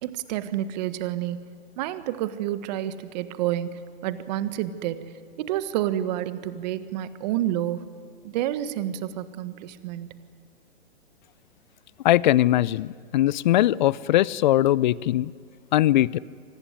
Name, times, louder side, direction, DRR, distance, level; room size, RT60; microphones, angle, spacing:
voice 1, 0.0-1.5 1.8-5.0 5.4-7.9 8.2-10.2, right 12 dB, 40° right, 13 dB, 1.6 m, -29 dB
voice 2, 12.0-15.3 15.7-16.2, left 14 dB, 45° left, 23 dB, 0.6 m, -20 dB
25.5 x 19.0 x 9.7 m, 2.2 s
hypercardioid pair, 130°, 32 cm